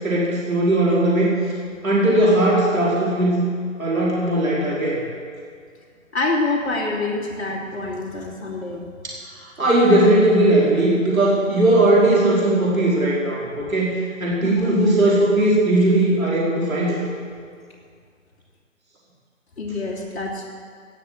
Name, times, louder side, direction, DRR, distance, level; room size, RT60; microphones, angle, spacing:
voice 1, 0.0-1.3 1.8-3.5 3.8-5.0 9.0-9.1 9.6-17.0, right 1 dB, 85° right, -5 dB, 5.1 m, -18 dB
voice 2, 6.1-8.8 14.4-14.8 19.6-20.5, left 2 dB, 55° left, -3 dB, 2.9 m, -26 dB
19.5 x 7.2 x 8.0 m, 2.1 s
figure-of-eight pair, 145°, 40 cm